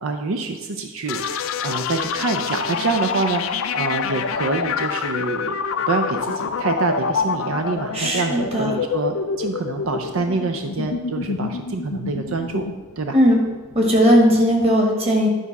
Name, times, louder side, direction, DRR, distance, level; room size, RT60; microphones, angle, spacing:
voice 1, 0.0-1.2 1.6-5.6 5.9-12.6 13.0-13.2, right 3 dB, 80° right, 6 dB, 0.6 m, -26 dB
sound 1, 1.1-14.7, left 5 dB, 80° left, 0.5 m, -27 dB
voice 2, 7.9-8.7 13.1-13.4 13.7-15.3, equal, 30° right, 0 dB, 1.7 m, -17 dB
11.0 x 4.1 x 5.9 m, 1.2 s
head